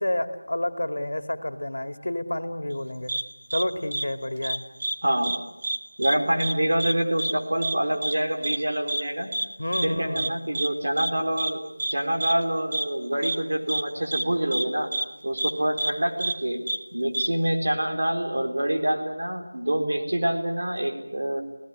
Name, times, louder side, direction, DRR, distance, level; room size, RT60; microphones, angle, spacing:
voice 1, 0.0-3.1 3.5-4.6 9.6-10.4, left 1 dB, 70° left, 9 dB, 2.5 m, -29 dB
sound 1, 3.1-3.2 3.5-3.6 3.9-4.0 4.4-5.0 5.2-5.4 5.6-6.1 6.4-6.5 6.8-6.9 7.2-7.3 7.6-7.7 8.0-8.1 8.4-8.6 8.9-9.0 9.3-9.5 9.7-9.9 10.2-10.3 10.5-10.7 11.0-11.1 11.4-11.5 11.8-11.9 12.2-12.3 12.7-12.8 13.2-13.4 13.7-13.8 14.1-14.2 14.5-14.6 14.9-15.0 15.4-15.5 15.8-15.9 16.2-16.3 16.7-16.8 17.1-17.3, right 2 dB, 25° right, 1.1 m, -28 dB
voice 2, 5.0-5.3 6.0-9.3 9.8-11.6 11.9-14.9 15.2-16.6 16.9-21.4, right 1 dB, 55° right, 4 dB, 4.3 m, -26 dB
28.0 x 18.0 x 9.9 m, 0.89 s
figure-of-eight pair, 180°, 0 cm